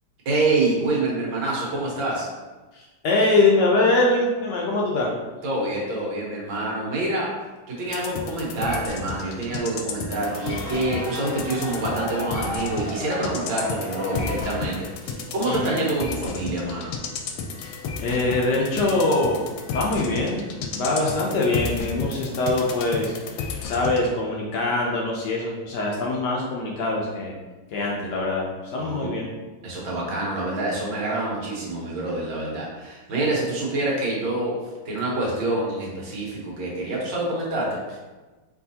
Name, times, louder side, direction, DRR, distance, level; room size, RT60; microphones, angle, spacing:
voice 1, 0.3-2.3 5.4-7.3 7.7-16.9 28.7-29.1 29.6-34.5 34.9-38.0, right 2 dB, 70° right, -4 dB, 1.8 m, -26 dB
voice 2, 2.7-5.1 15.5-15.8 17.6-19.4 19.7-20.4 20.7-27.3 27.7-29.3, left 2 dB, 70° left, -2 dB, 1.1 m, -23 dB
sound 1, 7.9-24.0, left 5 dB, 90° left, 1.4 m, -33 dB
sound 2, 10.1-15.1, left 1 dB, 30° left, 0.4 m, -35 dB
4.6 x 3.5 x 2.7 m, 1.2 s
omnidirectional pair, 2.2 m